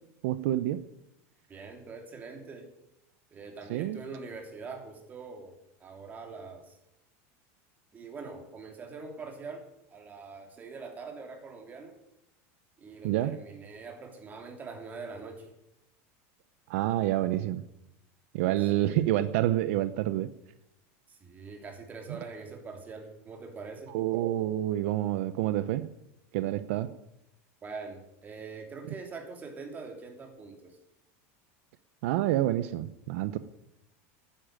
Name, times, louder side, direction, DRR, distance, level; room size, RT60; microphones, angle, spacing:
voice 1, 0.2-0.8 3.7-4.0 13.0-13.4 16.7-17.6 18.3-20.3 23.9-25.9 26.3-26.9 32.0-33.4, right 14 dB, 70° right, 13 dB, 0.8 m, -28 dB
voice 2, 1.5-2.7 3.3-6.8 7.9-11.9 12.8-15.5 18.6-19.1 21.1-23.9 27.6-30.8, right 4 dB, 20° right, 3 dB, 3.3 m, -43 dB
11.5 x 10.0 x 9.1 m, 0.85 s
supercardioid pair, 145°, 8 cm